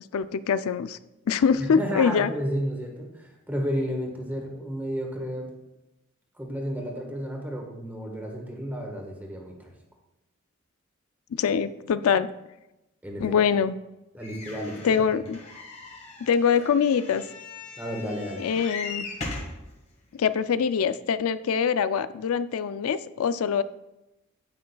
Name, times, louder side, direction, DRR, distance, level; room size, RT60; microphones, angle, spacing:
voice 1, 0.1-1.0 1.3-2.3 11.3-12.3 13.2-13.7 14.8-15.4 16.2-17.2 18.4-19.1 20.2-23.6, left 6 dB, 85° left, 14 dB, 0.4 m, -24 dB
voice 2, 1.7-5.5 6.4-9.6 13.0-13.3 14.1-14.9 17.8-18.4, equal, 10° right, 0 dB, 1.3 m, -32 dB
sound 1, 14.2-19.6 20.3-20.4 20.6-20.7, left 3 dB, 35° left, 1.5 m, -39 dB
9.6 x 8.6 x 2.3 m, 0.97 s
head